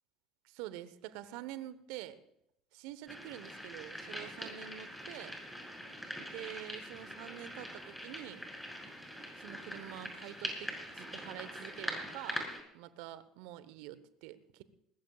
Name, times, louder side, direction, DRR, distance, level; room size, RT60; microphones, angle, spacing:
voice 1, 0.4-2.2 2.7-5.4 6.2-8.4 9.4-12.5 12.7-14.6, right 13 dB, 70° right, 14 dB, 1.1 m, -47 dB
sound 1, 3.1-12.6, equal, 5° left, 6.9 m, -43 dB
21.0 x 20.5 x 2.4 m, 0.75 s
hypercardioid pair, 65°, 0 cm